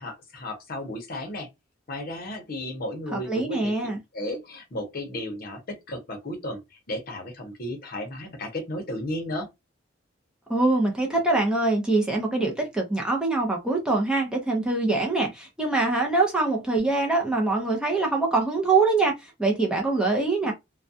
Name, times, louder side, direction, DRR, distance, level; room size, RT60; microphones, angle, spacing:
voice 1, 0.0-1.5 1.9-3.7 4.1-9.5, left 1 dB, 50° left, 0.7 m, -34 dB
voice 2, 3.1-4.0 10.5-19.1 19.4-20.5, right 3 dB, 5° right, 0.5 m, -24 dB
2.3 x 2.2 x 2.6 m
head